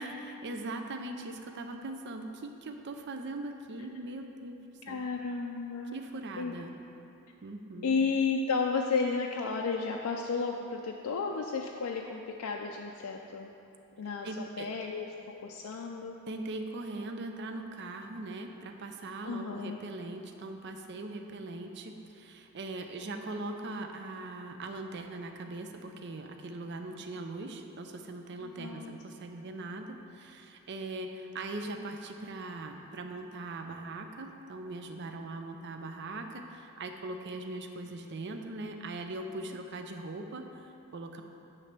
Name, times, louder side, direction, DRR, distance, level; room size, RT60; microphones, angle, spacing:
voice 1, 0.0-4.6 4.9-5.0 5.9-6.7 7.4-8.0 14.2-14.7 16.3-41.2, right 2 dB, 50° right, 5 dB, 0.5 m, -40 dB
voice 2, 4.9-6.0 6.4-6.5 7.8-13.5 14.0-15.1 15.4-16.2 19.2-19.8 28.6-28.9, left 4 dB, 85° left, 0 dB, 0.5 m, -32 dB
9.8 x 3.3 x 6.6 m, 2.8 s
head